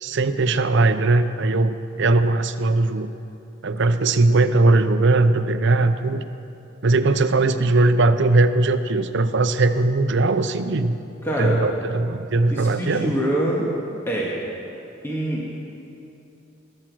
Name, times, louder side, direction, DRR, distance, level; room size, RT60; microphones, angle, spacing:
voice 1, 0.0-3.1 3.6-6.2 6.8-11.0 11.4-13.1, right 2 dB, 65° right, 10 dB, 0.7 m, -19 dB
voice 2, 11.2-11.6 12.5-13.7 14.1-14.4 15.0-15.5, right 1 dB, 10° left, -5 dB, 1.8 m, -24 dB
21.5 x 8.9 x 6.2 m, 2.7 s
head